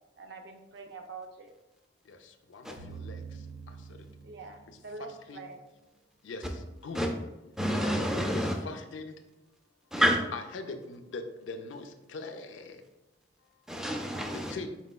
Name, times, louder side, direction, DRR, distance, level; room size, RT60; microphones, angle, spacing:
voice 1, 0.2-1.5 4.2-5.6 8.5-8.7, right 3 dB, 60° right, 0.5 m, -45 dB
voice 2, 2.0-4.1 4.7-5.5 6.2-7.0 8.3-9.2 10.0-12.8 14.5-14.8, left 3 dB, 75° left, 0.4 m, -42 dB
sound 1, 2.8-5.0, right 5 dB, 85° right, 1.1 m, -45 dB
voice 3, 7.6-8.6 9.9-10.2 13.7-14.5, equal, 5° right, 0.4 m, -28 dB
4.4 x 4.1 x 2.2 m
head